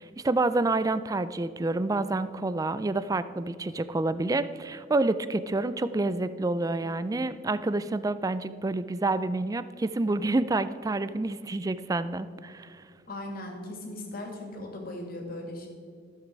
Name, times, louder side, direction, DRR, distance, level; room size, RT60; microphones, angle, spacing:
voice 1, 0.0-12.8, right 2 dB, 20° right, 14 dB, 0.3 m, -28 dB
voice 2, 13.1-15.7, left 1 dB, 50° left, 1 dB, 2.2 m, -38 dB
14.5 x 7.4 x 4.6 m, 2.2 s
head